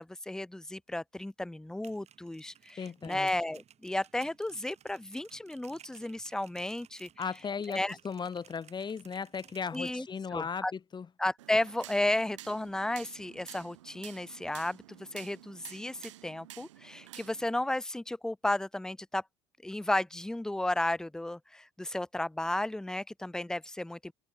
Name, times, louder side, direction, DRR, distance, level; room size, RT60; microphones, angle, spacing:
voice 1, 0.0-7.1 7.7-8.0 9.7-10.1 10.3-10.7 11.2-19.2 19.6-24.1, left 1 dB, 5° left, 0.4 m, -33 dB
sound 1, 1.6-10.0, right 9 dB, 45° right, 3.6 m, -58 dB
voice 2, 2.8-3.3 7.2-7.8 8.0-11.1, left 6 dB, 30° left, 1.4 m, -36 dB
sound 2, 11.4-17.5, right 15 dB, 90° right, 1.6 m, -51 dB
hypercardioid pair, 75°, 15 cm